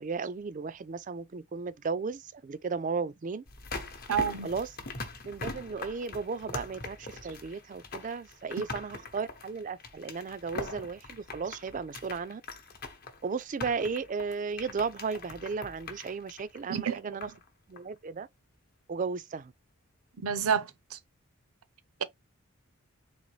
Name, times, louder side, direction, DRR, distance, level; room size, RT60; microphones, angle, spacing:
voice 1, 0.0-3.4 4.4-4.7 5.3-12.4 13.2-17.3 17.7-18.3 18.9-19.5, right 5 dB, 35° right, 0.3 m, -35 dB
sound 1, 3.5-17.5 17.8-17.9, left 3 dB, 45° left, 0.8 m, -42 dB
voice 2, 4.1-4.5 16.7-17.2 20.2-21.0, right 7 dB, 85° right, 0.6 m, -29 dB
3.9 x 3.0 x 3.1 m
head